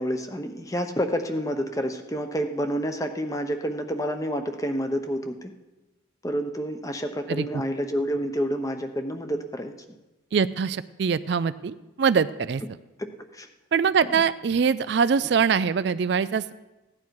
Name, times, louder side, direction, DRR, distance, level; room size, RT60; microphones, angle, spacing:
voice 1, 0.0-5.5 6.2-9.7 13.3-13.5, equal, 15° left, 6 dB, 0.9 m, -29 dB
voice 2, 10.3-12.6 13.7-16.5, right 6 dB, 60° right, 14 dB, 0.4 m, -23 dB
16.0 x 10.5 x 4.7 m, 1.1 s
head